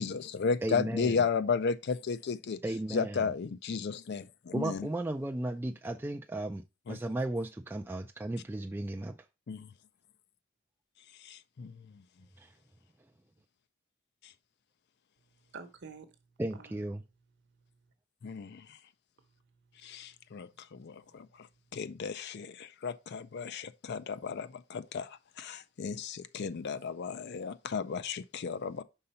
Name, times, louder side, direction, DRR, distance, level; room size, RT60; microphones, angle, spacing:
voice 1, 0.0-2.6 2.9-4.9 6.9-7.0 9.5-9.7 11.2-11.7 18.2-18.6 19.8-21.3 21.7-28.8, left 5 dB, 55° left, 0.4 m, -34 dB
voice 2, 0.6-1.2 2.6-3.3 4.5-9.2 12.4-12.5 16.4-17.0, right 1 dB, 10° right, 0.3 m, -35 dB
voice 3, 15.2-16.8 17.4-17.9 19.2-21.9 24.1-24.2 26.7-26.9, right 4 dB, 55° right, 1.0 m, -55 dB
5.6 x 3.9 x 5.5 m
head